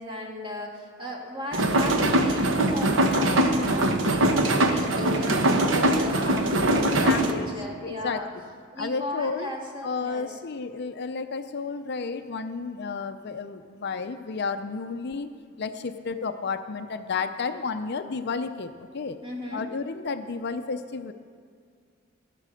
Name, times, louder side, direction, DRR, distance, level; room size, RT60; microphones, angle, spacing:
voice 1, 0.0-8.3 8.7-10.4 15.9-16.0 19.2-19.7, left 1 dB, 25° right, -1 dB, 1.9 m, -36 dB
sound 1, 1.5-7.3, right 1 dB, 65° right, 1.0 m, -22 dB
voice 2, 7.0-7.5 7.8-8.2 8.8-9.5 9.8-15.3 15.6-19.2 19.5-21.1, left 4 dB, 55° left, 9 dB, 0.5 m, -32 dB
17.0 x 7.5 x 6.3 m, 2.1 s
head